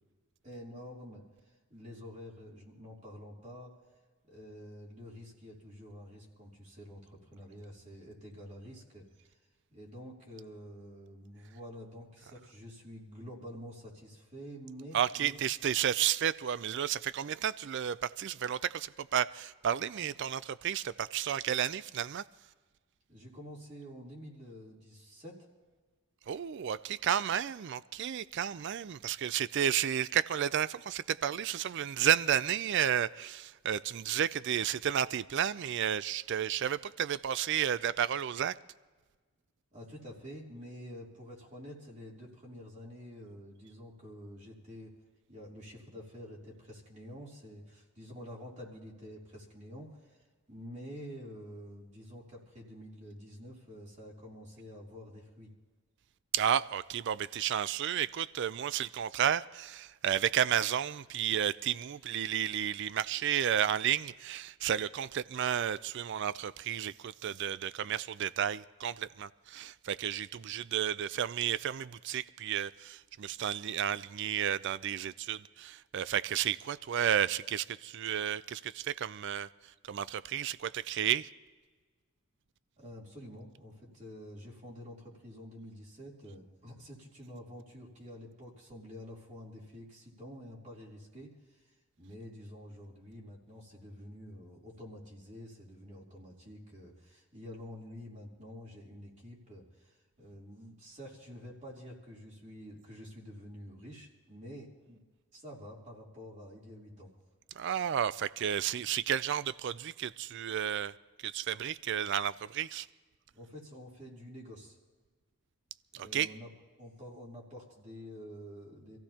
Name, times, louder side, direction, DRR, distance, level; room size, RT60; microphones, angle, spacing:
voice 1, 0.4-1.2 1.7-3.7 4.2-9.4 9.7-15.4 23.1-25.4 39.7-45.0 45.3-50.2 50.5-55.5 82.8-105.0 105.3-107.1 113.3-114.8 115.9-116.5 116.8-119.0, equal, 35° right, 3.2 m, -48 dB
voice 2, 14.9-22.2 26.3-38.5 56.3-79.5 79.8-81.3 107.6-110.9 111.2-112.9 115.9-116.3, right 9 dB, 55° right, 0.4 m, -32 dB
26.0 x 15.5 x 2.9 m
head